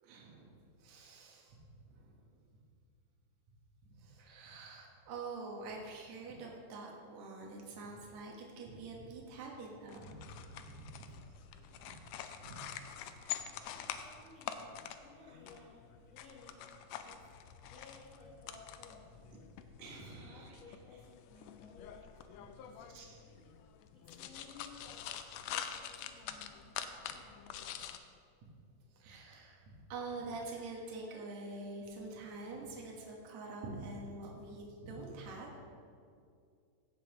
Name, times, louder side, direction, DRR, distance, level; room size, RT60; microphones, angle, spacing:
voice 1, 0.0-2.3 4.0-11.2 11.7-12.1 12.4-12.6 13.0-13.8 15.3-15.4 19.8-20.6 22.9-23.2 28.9-35.6, right 3 dB, 65° right, -2 dB, 2.5 m, -46 dB
sound 1, 9.9-28.0, left 9 dB, 90° left, 1.5 m, -46 dB
voice 2, 13.6-23.6 23.9-27.8, left 3 dB, 65° left, -7 dB, 0.8 m, -58 dB
16.0 x 7.0 x 3.0 m, 2.4 s
omnidirectional pair, 3.6 m